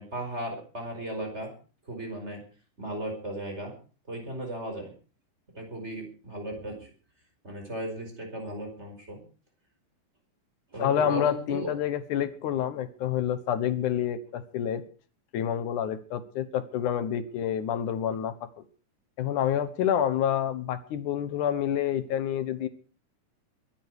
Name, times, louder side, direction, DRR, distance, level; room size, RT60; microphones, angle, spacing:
voice 1, 0.0-1.5 1.9-2.4 2.8-3.8 4.1-4.9 5.5-6.9 7.4-9.2 10.7-11.7, right 1 dB, 15° right, 3 dB, 5.1 m, -36 dB
voice 2, 10.8-14.8 15.3-18.3 19.2-22.7, left 9 dB, 65° left, 13 dB, 2.3 m, -28 dB
22.5 x 10.5 x 4.8 m, 0.37 s
omnidirectional pair, 4.3 m